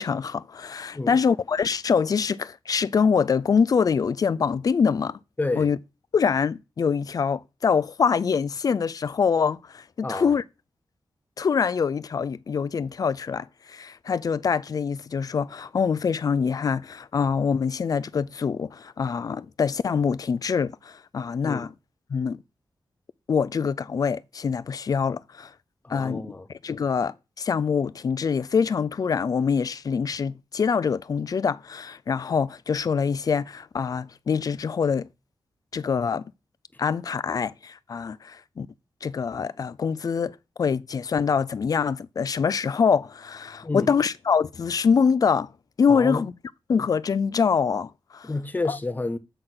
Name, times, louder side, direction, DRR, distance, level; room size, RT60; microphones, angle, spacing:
voice 1, 0.0-5.2 5.6-5.8 6.1-10.4 11.4-21.7 22.1-22.4 23.3-25.5 25.9-26.2 26.6-35.1 35.7-36.2 36.8-38.7 39.0-45.5 45.8-46.3 46.7-48.3 48.7-48.8, left 6 dB, 45° left, 0.4 m, -24 dB
voice 2, 5.4-5.7 10.0-10.3 21.4-21.7 25.8-26.5 43.6-43.9 45.9-46.2 48.2-49.2, left 2 dB, 20° left, 0.8 m, -29 dB
7.9 x 3.8 x 6.0 m
wide cardioid pair, 110°, 8 cm